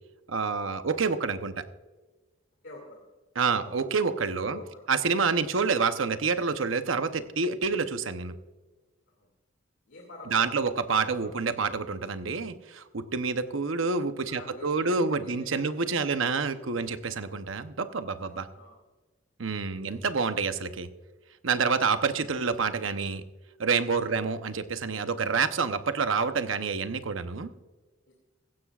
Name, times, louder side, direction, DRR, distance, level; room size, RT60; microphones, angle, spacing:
voice 1, 0.3-1.6 3.4-4.6 4.9-8.3 10.3-18.5 19.4-20.9 21.4-23.2 23.6-27.5, right 5 dB, 85° right, 10 dB, 0.8 m, -28 dB
voice 2, 2.6-3.0 3.5-3.7 4.4-4.9 9.2-9.3 9.9-11.4 14.3-16.2 16.7-16.9 18.2-18.8 19.7-20.0 24.1-24.2 28.1-28.2, left 2 dB, 70° left, 0 dB, 2.4 m, -47 dB
16.0 x 15.5 x 2.4 m, 1.2 s
head